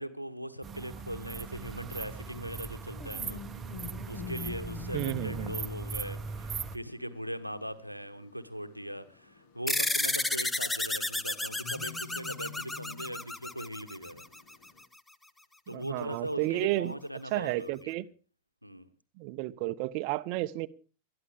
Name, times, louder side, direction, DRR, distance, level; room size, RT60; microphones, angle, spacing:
voice 1, 0.0-3.4 4.1-14.2 15.7-18.0 18.6-18.9, equal, 90° right, 1.1 m, -40 dB
sound 1, 0.6-6.8, right 5 dB, 20° right, 1.0 m, -39 dB
sound 2, 1.4-14.8, left 9 dB, 50° left, 2.3 m, -49 dB
voice 2, 4.9-5.6 15.7-16.9 17.3-18.1 19.2-20.7, right 18 dB, 45° right, 0.7 m, -32 dB
sound 3, 9.7-14.5, left 2 dB, 10° left, 0.7 m, -32 dB
20.5 x 13.0 x 3.5 m
figure-of-eight pair, 90°, 0 cm